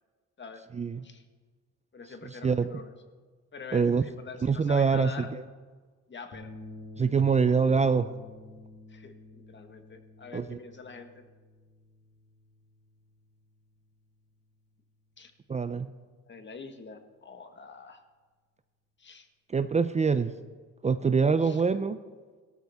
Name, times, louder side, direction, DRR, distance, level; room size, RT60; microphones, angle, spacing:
voice 1, 0.7-1.1 2.4-2.7 3.7-4.0 4.4-5.4 7.0-8.1 10.3-10.6 15.5-15.9 19.5-20.3 20.8-22.0, right 5 dB, 25° right, 11 dB, 0.5 m, -25 dB
voice 2, 1.9-2.9 3.5-5.3 6.1-6.5 8.9-11.2 15.2-15.3 16.2-18.0 19.0-19.3 21.4-21.6, left 4 dB, 40° left, 7 dB, 1.5 m, -45 dB
sound 1, 6.3-14.8, left 2 dB, 55° left, 3.0 m, -50 dB
18.0 x 13.0 x 3.6 m, 1.4 s
cardioid pair, 90°, 30 cm